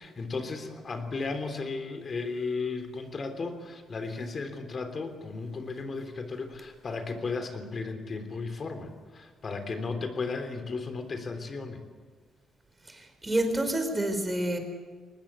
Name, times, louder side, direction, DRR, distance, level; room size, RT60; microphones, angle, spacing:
voice 1, 0.0-11.8, left 4 dB, 40° left, 7 dB, 3.5 m, -35 dB
voice 2, 12.8-14.6, right 1 dB, 15° right, 6 dB, 4.6 m, -28 dB
22.5 x 19.5 x 8.4 m, 1.5 s
cardioid pair, 90°, 0 cm